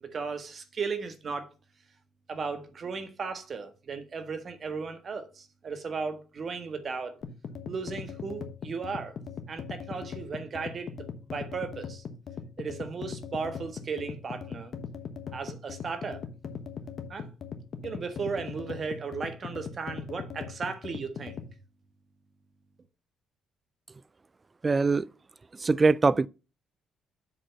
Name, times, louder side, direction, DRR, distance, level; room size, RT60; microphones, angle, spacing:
voice 1, 0.0-1.5 2.3-7.2 7.7-9.1 9.5-10.9 11.3-12.0 12.6-14.7 15.3-16.2 17.1-17.3 17.8-21.3, right 5 dB, 45° right, 1.5 m, -36 dB
sound 1, 7.2-21.5, left 6 dB, 60° left, 1.2 m, -40 dB
voice 2, 24.6-25.1 25.6-26.3, right 3 dB, 30° right, 0.3 m, -22 dB
7.5 x 4.3 x 5.6 m
cardioid pair, 90°, 0 cm